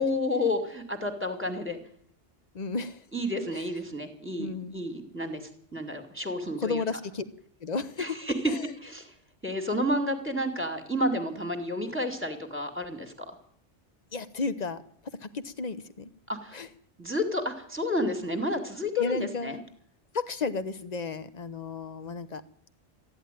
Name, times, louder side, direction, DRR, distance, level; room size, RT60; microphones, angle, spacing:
voice 1, 0.0-1.8 3.1-6.8 8.0-8.5 8.8-9.1 9.4-13.3 16.3-16.6 17.0-19.6, left 1 dB, 10° right, 5 dB, 2.2 m, -30 dB
voice 2, 2.5-3.0 4.4-4.8 6.6-7.2 7.6-8.1 8.5-8.6 14.1-14.8 15.2-16.1 16.5-16.7 19.0-19.6 20.1-22.4, left 4 dB, 40° left, 12 dB, 0.9 m, -33 dB
14.5 x 11.0 x 9.1 m, 0.62 s
omnidirectional pair, 1.2 m